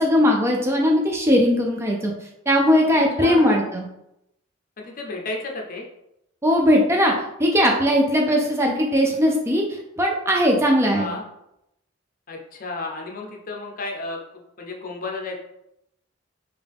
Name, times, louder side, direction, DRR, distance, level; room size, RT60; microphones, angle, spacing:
voice 1, 0.0-2.1 2.5-3.9 6.4-7.1 7.4-11.1, equal, 15° right, 0 dB, 0.4 m, -19 dB
voice 2, 3.2-3.6 4.8-5.9 10.9-11.2 12.3-15.4, left 3 dB, 45° left, 1 dB, 0.6 m, -32 dB
3.7 x 2.3 x 3.4 m, 0.82 s
head